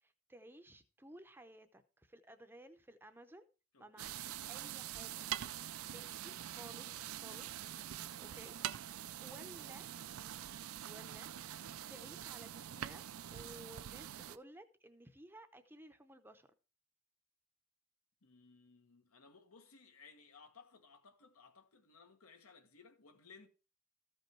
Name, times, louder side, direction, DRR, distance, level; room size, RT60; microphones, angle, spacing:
voice 1, 0.0-3.5 3.8-5.3 5.9-7.5 8.2-8.5 9.2-9.9 10.8-11.6 11.9-13.1 13.3-16.5, right 1 dB, 10° right, 0.6 m, -56 dB
voice 2, 3.7-4.2 7.2-8.2 18.2-23.5, left 4 dB, 85° left, 1.4 m, -61 dB
sound 1, 4.0-14.4, right 11 dB, 80° right, 0.5 m, -45 dB
13.5 x 5.3 x 4.5 m
head